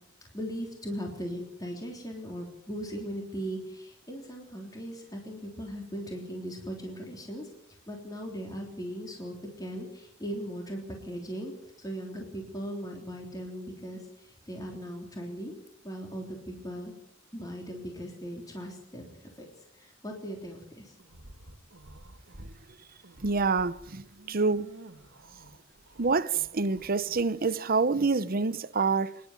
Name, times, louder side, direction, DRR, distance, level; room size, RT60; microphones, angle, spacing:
voice 1, 0.3-7.5 7.9-15.5 15.8-16.9 17.3-19.5 19.7-20.9, equal, 20° left, 3.4 m, -38 dB
sound 1, 21.0-22.6 22.9-27.2, right 1 dB, 85° right, 1.9 m, -51 dB
voice 2, 23.2-24.7 26.0-29.2, right 4 dB, 50° right, 0.8 m, -27 dB
26.0 x 11.0 x 9.5 m
head